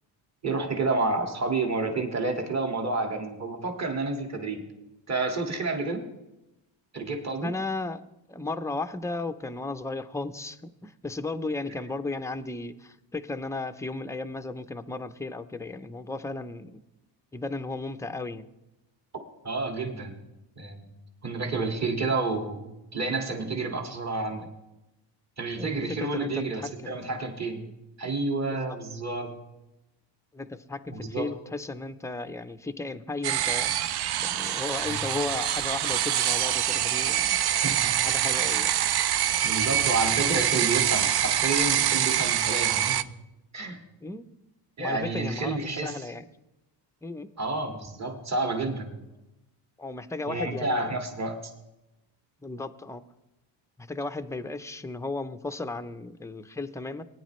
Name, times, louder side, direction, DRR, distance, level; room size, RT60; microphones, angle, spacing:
voice 1, 0.4-4.6 5.1-6.1 6.9-7.5 19.4-20.2 20.6-20.9 21.2-24.5 25.4-27.6 28.0-29.4 30.9-31.3 34.7-35.0 37.5-38.0 38.3-38.5 39.4-43.1 43.5-43.8 44.8-46.0 47.4-49.0 50.3-51.5, right 3 dB, 35° right, 3 dB, 1.9 m, -30 dB
voice 2, 7.4-8.0 8.3-16.8 17.3-18.5 25.5-27.0 27.5-27.7 28.5-28.6 30.3-33.7 34.2-37.4 38.0-38.7 44.0-44.2 44.8-46.2 47.0-47.3 49.8-50.9 52.4-53.0 53.8-57.0, left 3 dB, 5° left, 9 dB, 0.5 m, -35 dB
sound 1, 33.2-43.0, right 11 dB, 55° right, 0.6 m, -25 dB
19.0 x 10.0 x 3.1 m, 0.94 s
cardioid pair, 110°, 47 cm